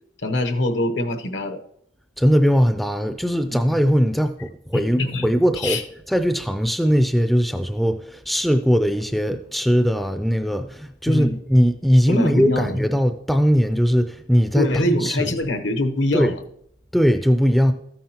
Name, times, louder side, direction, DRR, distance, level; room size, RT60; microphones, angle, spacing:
voice 1, 0.2-1.6 3.5-3.6 4.7-5.3 5.6-5.8 11.1-11.4 12.1-12.8 14.5-16.4, left 1 dB, 80° left, 1.0 m, -23 dB
voice 2, 2.2-5.8 6.1-15.3 16.1-16.3 16.9-17.7, equal, ahead, 0.4 m, -20 dB
13.5 x 9.3 x 2.9 m
head